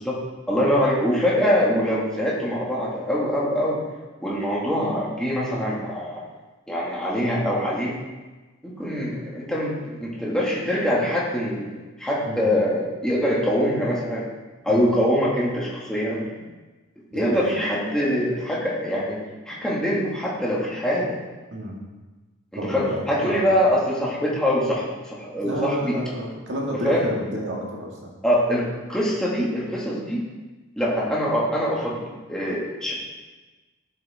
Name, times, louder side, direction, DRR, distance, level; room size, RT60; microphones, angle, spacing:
voice 1, 0.5-3.8 4.2-6.2 6.7-7.9 8.6-14.2 14.6-16.2 17.1-19.2 19.5-21.2 22.7-25.9 26.8-27.1 28.2-28.6 28.9-30.2 30.8-32.9, equal, 5° left, -6 dB, 2.0 m, -24 dB
voice 2, 17.1-17.5 21.5-21.8 22.6-23.5 25.4-28.0, equal, 55° right, -2 dB, 2.1 m, -30 dB
12.0 x 6.7 x 3.6 m, 1.2 s
head